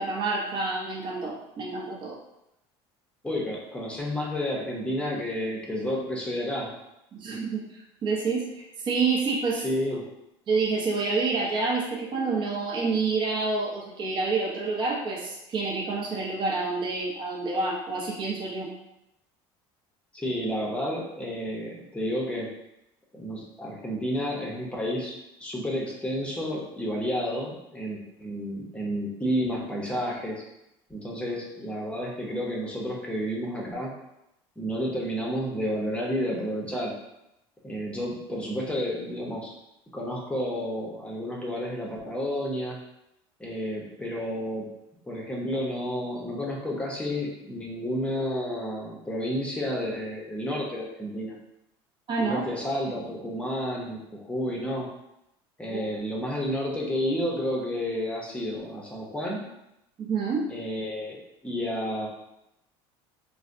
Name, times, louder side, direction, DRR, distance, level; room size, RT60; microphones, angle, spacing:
voice 1, 0.0-2.2 7.1-7.6 8.0-8.5 8.8-9.6 10.5-18.7 52.1-52.4 55.7-55.8 60.0-60.5, right 4 dB, 40° right, -4 dB, 0.7 m, -28 dB
voice 2, 3.2-6.7 9.5-10.0 20.1-22.5 23.1-25.1 25.4-30.4 30.9-33.9 34.6-36.9 37.6-39.5 39.9-42.8 43.4-44.7 45.0-51.4 52.2-54.9 55.6-59.4 60.5-61.2 61.4-62.1, equal, 10° left, -3 dB, 0.8 m, -31 dB
3.2 x 2.2 x 2.6 m, 0.86 s
supercardioid pair, 105°, 13 cm